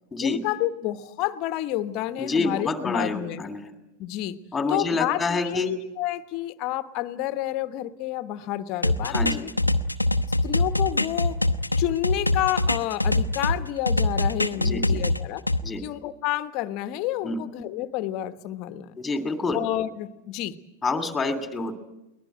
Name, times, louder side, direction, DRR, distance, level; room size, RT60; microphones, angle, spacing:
voice 1, 0.2-3.4 4.0-4.4 4.7-9.5 10.4-11.4 11.8-15.4 15.8-19.0 19.5-20.6, left 14 dB, 40° left, 12 dB, 1.3 m, -29 dB
voice 2, 2.2-3.7 4.5-5.7 9.0-9.5 14.6-15.0 15.6-15.8 17.2-17.4 19.0-19.6 20.8-21.8, left 3 dB, 10° left, 7 dB, 2.7 m, -27 dB
sound 1, 8.8-13.6 13.9-15.6, left 2 dB, 85° left, 0.9 m, -23 dB
22.5 x 19.5 x 9.1 m, 0.94 s
figure-of-eight pair, 90°, 0 cm